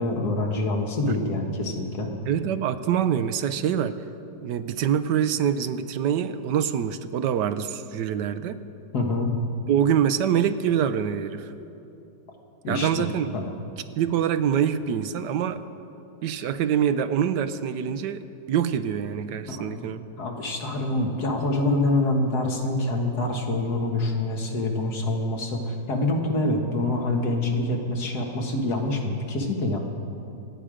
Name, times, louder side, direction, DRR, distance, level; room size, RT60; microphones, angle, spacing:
voice 1, 0.0-2.1 8.9-9.3 12.6-13.5 19.5-19.9 20.2-29.8, left 2 dB, 60° left, 1 dB, 2.1 m, -26 dB
voice 2, 2.3-4.0 4.4-8.6 9.7-11.5 12.7-13.4 14.0-15.6 16.2-20.0, right 8 dB, 75° right, 11 dB, 1.2 m, -25 dB
26.5 x 9.2 x 5.0 m, 2.7 s
omnidirectional pair, 1.9 m